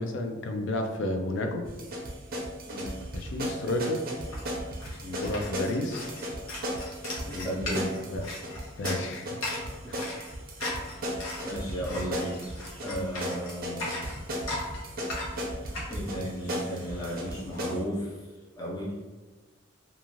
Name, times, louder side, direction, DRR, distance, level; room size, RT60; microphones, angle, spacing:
voice 1, 0.0-1.6 3.1-4.0 5.2-6.1 8.1-8.2 8.8-9.4 9.9-10.1, left 1 dB, 65° left, 4 dB, 0.4 m, -31 dB
sound 1, 1.6-17.8, equal, 50° right, 0.5 m, -36 dB
voice 2, 2.7-3.1 5.0-5.2 7.2-8.0 9.8-10.0 11.4-13.9 15.9-18.3 18.6-19.0, equal, 20° left, -6 dB, 0.6 m, -35 dB
sound 2, 3.7-17.6, left 2 dB, 85° left, 0.9 m, -39 dB
2.4 x 2.4 x 3.0 m, 1.2 s
head